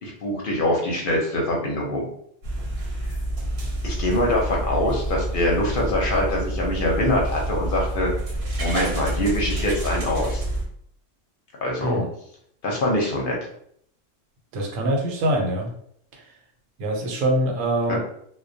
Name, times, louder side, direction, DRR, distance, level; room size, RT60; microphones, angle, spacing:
voice 1, 0.0-2.1 3.8-8.1 8.6-10.4 11.6-12.0 12.6-13.4 17.9-18.0, left 1 dB, 55° left, -1 dB, 0.7 m, -24 dB
sound 1, 2.4-10.7, right 1 dB, 60° right, 0.8 m, -28 dB
voice 2, 14.5-15.7 16.8-18.0, right 1 dB, 85° right, 1 dB, 1.0 m, -24 dB
2.2 x 2.1 x 2.6 m, 0.67 s
omnidirectional pair, 1.3 m